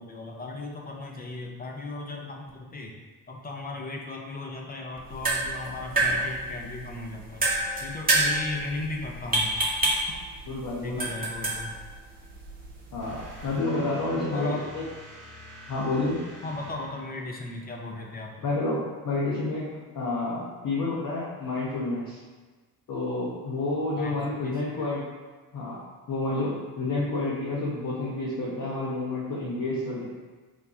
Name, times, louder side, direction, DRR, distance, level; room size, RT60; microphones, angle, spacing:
voice 1, 0.0-2.9 3.3-7.5 7.8-9.5 10.8-11.8 14.3-14.7 16.4-18.4 24.0-24.9, left 2 dB, 20° left, 1 dB, 0.6 m, -36 dB
sound 1, 5.0-13.6, right 2 dB, 20° right, 0.9 m, -29 dB
voice 2, 10.5-11.0 12.9-14.8 15.7-16.3 18.4-19.6 19.9-22.2 22.9-25.0 25.5-25.8 26.1-30.0, left 2 dB, 40° left, -7 dB, 0.9 m, -29 dB
sound 2, 13.0-17.7, equal, 85° right, 0.7 m, -46 dB
4.7 x 2.2 x 2.7 m, 1.3 s
hypercardioid pair, 50°, 48 cm